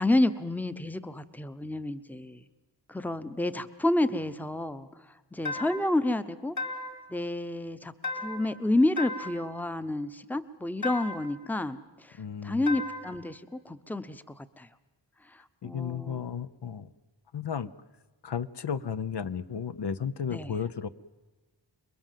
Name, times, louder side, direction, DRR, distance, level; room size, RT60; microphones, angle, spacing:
voice 1, 0.0-2.4 2.9-6.6 7.1-7.9 8.2-14.7 15.3-16.3 20.3-20.6, left 1 dB, 5° left, 12 dB, 0.9 m, -30 dB
sound 1, 5.4-6.0 6.6-7.1 8.0-8.6 9.0-9.5 10.8-11.4 12.7-13.2, left 2 dB, 40° left, 2.4 m, -35 dB
voice 2, 12.2-12.7 15.6-16.9 17.3-17.7 18.2-20.9, left 7 dB, 65° left, 13 dB, 0.8 m, -34 dB
27.0 x 22.0 x 7.5 m, 1.2 s
wide cardioid pair, 100°, 45 cm